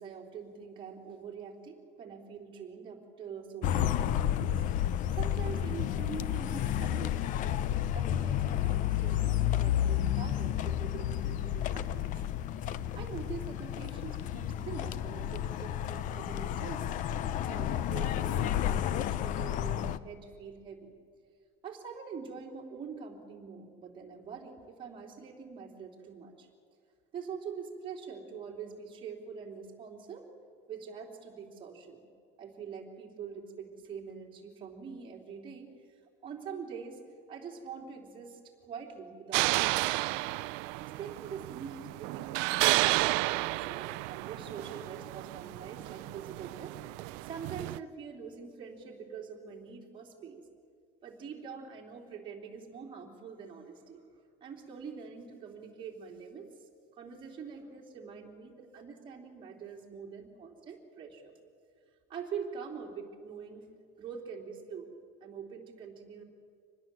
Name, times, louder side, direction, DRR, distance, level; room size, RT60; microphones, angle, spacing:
voice 1, 0.0-4.6 5.1-7.5 7.9-12.2 12.9-17.0 17.4-20.9 21.6-26.5 27.1-30.3 30.7-32.1 32.4-37.0 37.3-40.2 40.8-46.7 47.2-50.5 51.0-54.0 54.4-61.3 62.1-63.7 64.0-64.9 65.2-66.2, right 6 dB, 25° right, -1 dB, 3.2 m, -44 dB
sound 1, 3.6-20.0, left 11 dB, 40° left, 0.6 m, -31 dB
sound 2, 39.3-47.8, right 21 dB, 80° right, 0.5 m, -32 dB
25.0 x 20.0 x 7.6 m, 2.1 s
cardioid pair, 175°, 19 cm